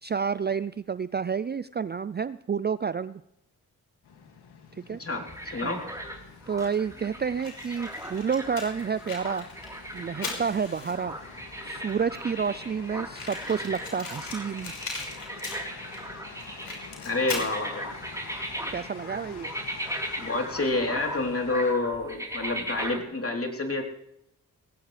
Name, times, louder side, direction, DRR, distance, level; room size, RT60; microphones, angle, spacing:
voice 1, 0.0-3.2 4.7-5.0 5.6-5.8 6.5-9.5 9.9-11.2 11.6-14.7 18.3-18.4 18.7-19.5, right 6 dB, 25° right, 16 dB, 0.5 m, -30 dB
sound 1, 4.0-21.8, left 5 dB, 80° left, 2.4 m, -48 dB
sound 2, 5.3-23.0, equal, 10° right, 4.0 m, -38 dB
voice 2, 5.5-5.8 17.0-18.0 20.2-23.8, left 2 dB, 35° left, 2 dB, 3.7 m, -28 dB
Fire, 7.4-11.2 11.9-12.0 12.1-12.2 12.5-12.6 13.1-16.0 16.3-17.6, left 3 dB, 60° left, 5.7 m, -38 dB
20.0 x 17.5 x 3.4 m, 0.82 s
supercardioid pair, 40°, 39 cm